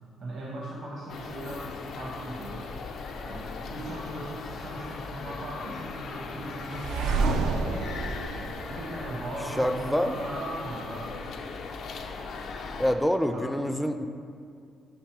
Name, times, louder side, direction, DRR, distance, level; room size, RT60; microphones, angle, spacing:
voice 1, 0.2-1.7 2.0-2.7 3.2-7.9 8.7-11.2 13.3-13.5, right 1 dB, 60° right, -3 dB, 0.9 m, -38 dB
sound 1, 1.1-12.9, left 4 dB, 70° left, 0.4 m, -39 dB
sound 2, 6.7-9.7, right 3 dB, 90° right, 0.4 m, -29 dB
voice 2, 9.6-10.2 12.8-14.1, equal, ahead, 7 dB, 0.3 m, -26 dB
6.2 x 3.3 x 4.7 m, 2.3 s
cardioid pair, 90°, 0 cm